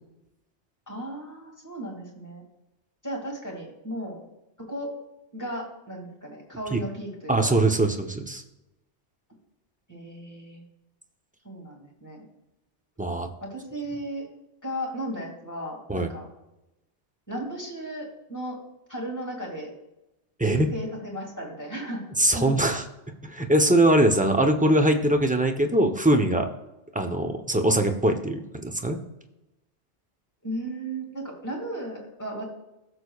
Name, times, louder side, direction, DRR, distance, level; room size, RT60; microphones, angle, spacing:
voice 1, 0.9-2.4 3.0-4.2 4.6-4.9 5.3-7.5 9.9-10.6 11.4-12.2 13.4-14.3 14.6-16.3 17.3-18.6 18.9-19.7 20.4-22.0 22.3-22.5 30.4-32.4, right 1 dB, 15° left, -2 dB, 2.2 m, -35 dB
voice 2, 7.3-8.4 13.0-13.3 15.9-16.1 20.4-20.7 22.2-22.8 23.2-26.5 26.9-29.0, right 1 dB, 10° right, 4 dB, 0.5 m, -22 dB
16.0 x 6.7 x 2.3 m, 0.94 s
omnidirectional pair, 1.2 m